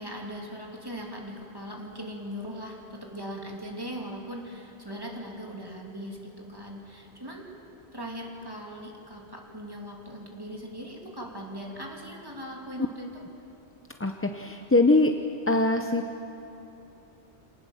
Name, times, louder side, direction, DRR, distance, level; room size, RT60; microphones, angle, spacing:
voice 1, 0.0-7.4 7.9-13.2, equal, 20° right, -1 dB, 2.9 m, -39 dB
voice 2, 14.0-15.1 15.5-16.0, left 2 dB, 15° left, 4 dB, 0.5 m, -22 dB
26.5 x 19.0 x 7.2 m, 3.0 s
omnidirectional pair, 1.1 m